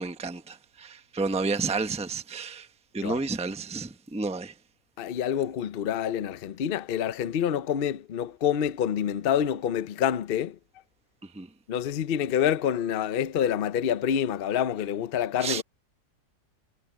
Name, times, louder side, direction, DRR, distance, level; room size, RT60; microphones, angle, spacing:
voice 1, 0.0-2.7 2.9-4.5 11.3-11.5 15.4-15.6, right 4 dB, 5° right, 0.8 m, -31 dB
voice 2, 5.0-10.6 11.7-15.6, left 9 dB, 50° left, 0.7 m, -27 dB
omnidirectional pair, 1.7 m